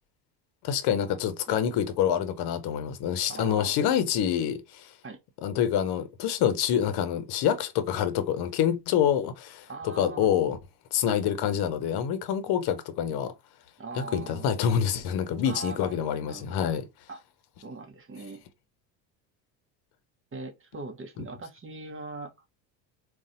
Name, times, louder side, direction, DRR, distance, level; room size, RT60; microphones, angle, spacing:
voice 1, 0.6-4.9 5.4-10.6 10.9-13.3 14.0-16.8, left 9 dB, 50° left, 0.8 m, -26 dB
voice 2, 1.5-1.9 3.3-3.8 5.0-5.2 9.7-10.3 11.1-11.2 13.8-14.6 15.4-16.7 17.1-17.2 17.6-18.4 20.3-22.3, right 3 dB, 25° right, 1.0 m, -41 dB
3.9 x 2.4 x 2.6 m
hypercardioid pair, 70°, 50 cm